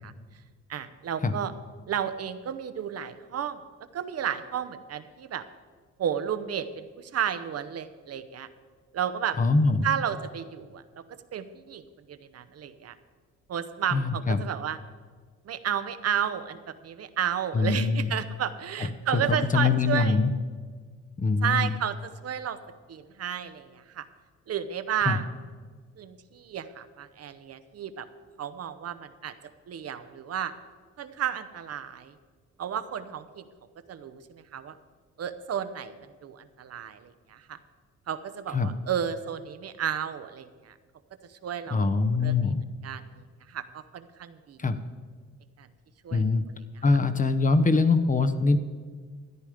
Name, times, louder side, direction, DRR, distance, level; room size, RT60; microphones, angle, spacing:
voice 1, 0.7-1.5 1.9-3.6 3.9-5.4 6.0-8.5 8.9-9.4 9.8-11.0 11.3-13.0 13.5-14.8 15.4-20.2 21.4-22.6 22.9-24.1 24.5-25.3 26.0-28.1 28.4-29.3 29.7-30.5 31.0-32.1 32.6-33.5 33.9-34.7 35.2-36.0 36.2-37.6 38.1-40.7 41.3-41.9 42.2-42.5 42.8-43.0 43.5-44.6 45.6-45.7 46.0-46.2, right 9 dB, 55° right, 11 dB, 0.8 m, -32 dB
voice 2, 9.4-9.9 13.9-14.4 17.5-18.1 19.1-20.3 21.2-21.7 25.1-25.2 38.5-38.7 41.7-42.6 44.6-44.8 46.1-46.4 46.8-48.6, left 4 dB, 25° left, 9 dB, 0.8 m, -23 dB
13.5 x 9.9 x 5.0 m, 1.5 s
cardioid pair, 90°, 30 cm